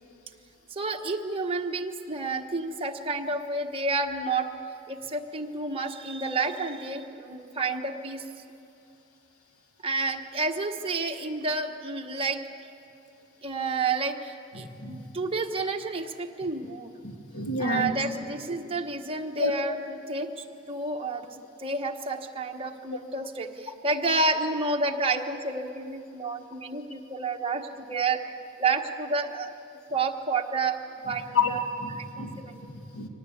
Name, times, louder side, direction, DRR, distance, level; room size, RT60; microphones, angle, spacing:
voice 1, 0.7-4.5 4.9-8.2 9.8-12.4 13.4-16.9 17.6-28.3 28.6-29.5 29.9-31.6 32.0-32.6, right 3 dB, 25° right, 3 dB, 1.2 m, -30 dB
voice 2, 14.5-15.1 17.0-17.9 19.4-19.5 31.1-33.1, left 3 dB, 80° left, 3 dB, 2.3 m, -30 dB
24.0 x 19.0 x 8.5 m, 2.7 s
head